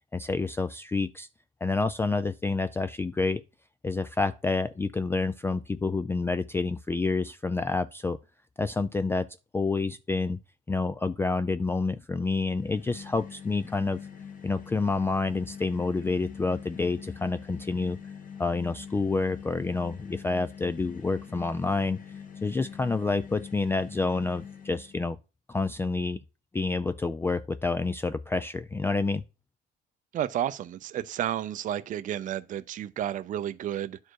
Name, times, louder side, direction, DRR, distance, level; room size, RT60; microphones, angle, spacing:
voice 1, 0.1-1.3 1.6-3.4 3.8-8.2 8.6-9.3 9.5-10.4 10.7-14.0 14.4-18.0 18.4-22.0 22.4-25.2 25.5-26.2 26.5-29.2, left 3 dB, 15° left, 0.3 m, -28 dB
sound 1, 12.5-25.1, left 7 dB, 55° left, 1.5 m, -44 dB
voice 2, 30.1-34.0, right 11 dB, 50° right, 0.5 m, -31 dB
11.0 x 4.4 x 4.7 m
cardioid pair, 110°, 17 cm